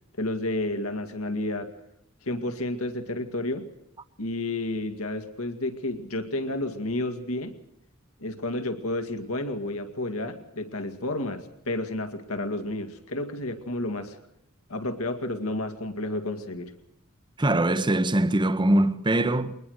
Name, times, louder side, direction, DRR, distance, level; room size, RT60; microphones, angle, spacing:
voice 1, 0.2-1.7 2.2-3.7 4.2-7.6 8.2-14.2 14.7-16.7, left 2 dB, 75° left, 2.2 m, -31 dB
voice 2, 17.4-19.5, right 1 dB, 20° right, 0.9 m, -22 dB
22.5 x 20.0 x 6.5 m
head